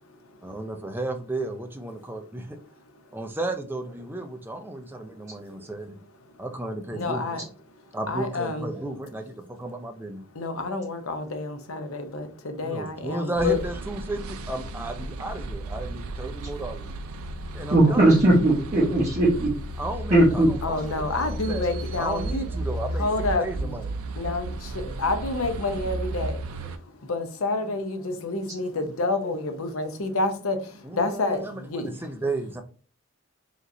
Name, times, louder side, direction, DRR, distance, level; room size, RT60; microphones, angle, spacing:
voice 1, 0.4-2.6 3.1-6.0 6.4-7.4 7.9-10.2 12.6-16.9 17.5-18.1 19.8-24.0 30.8-32.6, right 2 dB, 10° right, 0.5 m, -34 dB
voice 2, 6.9-7.5 8.1-8.7 10.4-13.6 17.8-17.9 20.6-22.5 23.0-23.7 24.2-26.4 27.1-30.6 30.9-31.4 31.7-31.9, left 3 dB, 80° left, 0.7 m, -28 dB
sound 1, 13.3-26.8, right 1 dB, 85° right, 0.4 m, -34 dB
voice 3, 17.7-19.5 20.1-20.5, right 1 dB, 35° right, 1.0 m, -18 dB
5.0 x 3.1 x 2.6 m
head